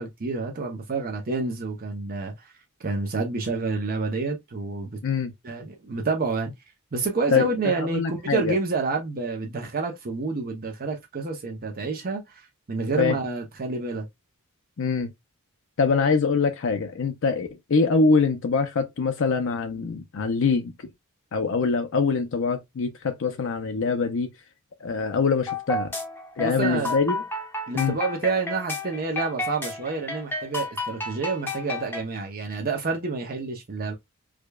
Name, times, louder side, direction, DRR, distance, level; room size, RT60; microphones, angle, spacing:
voice 1, 0.0-2.3 2.8-5.0 5.4-6.5 6.9-14.1 26.4-27.0 27.7-33.9, right 3 dB, 40° right, 0.7 m, -28 dB
voice 2, 5.0-5.3 7.3-8.5 13.0-13.2 14.8-15.1 15.8-20.9 21.3-24.3 24.8-25.9 26.4-27.2 27.7-28.0, left 4 dB, 60° left, 0.5 m, -24 dB
sound 1, 25.5-32.0, left 2 dB, 10° left, 0.7 m, -32 dB
4.8 x 2.2 x 2.2 m
head